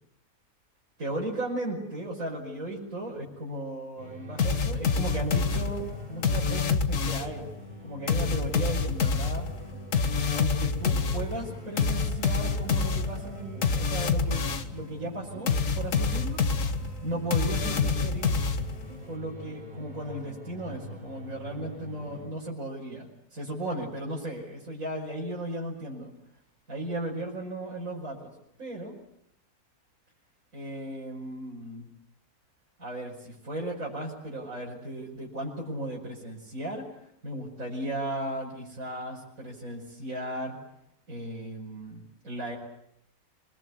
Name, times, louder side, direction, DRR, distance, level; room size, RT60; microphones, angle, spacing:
voice 1, 1.0-7.4 7.8-9.5 10.3-16.4 17.0-18.4 19.1-26.1 26.7-28.3 28.6-28.9 30.5-31.9 32.8-36.9 37.2-40.6 41.1-42.6, right 1 dB, 55° right, -4 dB, 5.9 m, -36 dB
sound 1, 4.0-22.3, equal, 30° right, 8.0 m, -44 dB
sound 2, 4.4-7.4 8.1-14.8 15.5-19.0, left 5 dB, 55° left, 1.7 m, -27 dB
26.5 x 22.0 x 9.8 m, 0.76 s
omnidirectional pair, 1.7 m